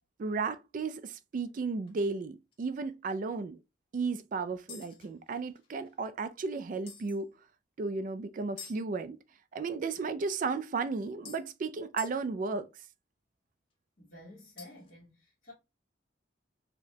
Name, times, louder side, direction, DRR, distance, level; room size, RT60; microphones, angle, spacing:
voice 1, 0.2-3.6 3.9-7.3 7.8-9.2 9.5-12.7, right 4 dB, 45° right, 0.3 m, -34 dB
sound 1, 0.8-1.0 1.5-1.6 1.9-2.0 2.5-2.6 4.7-6.0 6.9-7.2 8.6-8.8 10.5-10.6 11.2-11.4 12.0-12.2 14.6-14.9, left 7 dB, 30° left, 0.9 m, -48 dB
voice 2, 14.0-15.5, left 1 dB, 50° left, 1.3 m, -51 dB
4.8 x 2.2 x 2.6 m
head